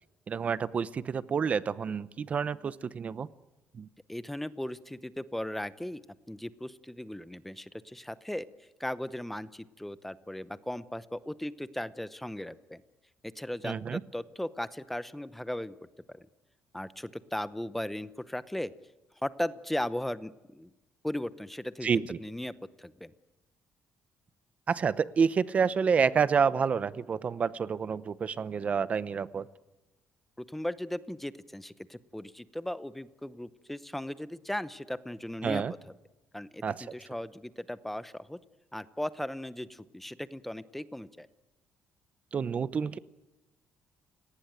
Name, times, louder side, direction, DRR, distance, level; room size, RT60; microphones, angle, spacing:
voice 1, 0.3-3.3 3.7-3.9 13.6-14.0 21.8-22.2 24.7-29.5 35.4-35.7 36.6-36.9 42.3-43.0, right 6 dB, 35° right, 16 dB, 0.8 m, -28 dB
voice 2, 4.1-6.0 6.3-8.5 8.8-12.8 13.2-15.8 16.1-16.3 16.7-18.7 19.2-20.7 21.0-23.1 30.4-35.6 36.3-38.4 38.7-41.3, left 1 dB, 5° left, 14 dB, 0.8 m, -37 dB
29.5 x 18.5 x 9.1 m, 1.1 s
cardioid pair, 150°, 4 cm